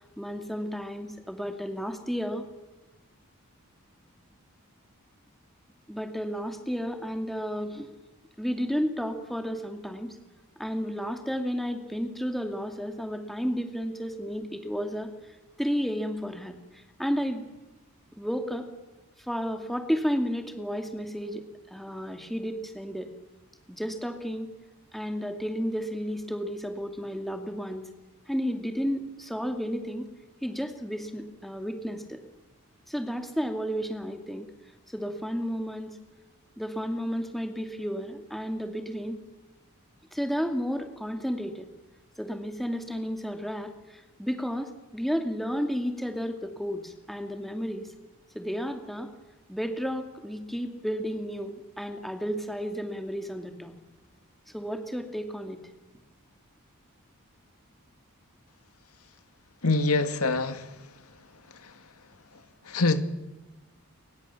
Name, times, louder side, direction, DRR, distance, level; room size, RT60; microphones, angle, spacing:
voice 1, 0.2-2.4 5.9-7.9 8.4-10.2 10.6-15.1 15.6-17.4 18.2-18.7 19.2-23.1 23.7-24.5 24.9-27.9 28.3-30.1 30.4-32.2 32.9-34.5 34.9-36.0 36.6-39.2 40.1-41.7 42.2-47.9 48.3-49.1 49.5-53.7 54.5-55.6, equal, ahead, 5 dB, 2.4 m, -32 dB
voice 2, 59.6-60.8 61.6-61.7 62.7-63.0, left 3 dB, 90° left, 9 dB, 2.2 m, -25 dB
29.5 x 23.5 x 7.1 m, 1.1 s
head